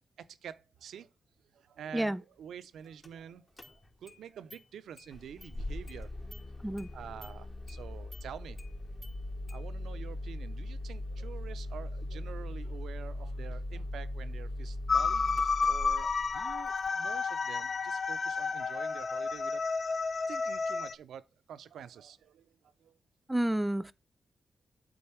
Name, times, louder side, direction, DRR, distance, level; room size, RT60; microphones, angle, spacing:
voice 1, 0.2-1.1 1.5-6.3 6.9-8.6 9.4-19.6 20.3-23.0, right 8 dB, 90° right, 0.4 m, -48 dB
Engine starting, 3.0-3.1 3.6-4.2 4.5-4.6 5.0-16.9, left 1 dB, 35° left, 1.3 m, -40 dB
sound 1, 14.9-20.9, left 4 dB, 55° left, 0.4 m, -31 dB
voice 2, 23.3-23.9, right 1 dB, 15° right, 0.4 m, -30 dB
8.7 x 3.9 x 4.4 m
cardioid pair, 60°, 0 cm